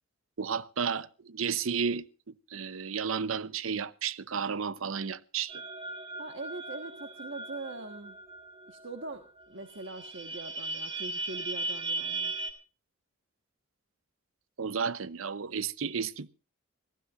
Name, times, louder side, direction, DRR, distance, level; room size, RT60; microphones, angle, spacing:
voice 1, 0.4-2.1 2.5-5.6 14.6-16.3, right 6 dB, 80° right, 0.7 m, -32 dB
sound 1, 5.5-9.1 9.4-9.5 9.7-12.5, right 3 dB, 25° right, 2.0 m, -37 dB
voice 2, 6.2-8.2 8.7-12.3, right 2 dB, 60° right, 1.4 m, -42 dB
25.5 x 15.0 x 2.5 m
head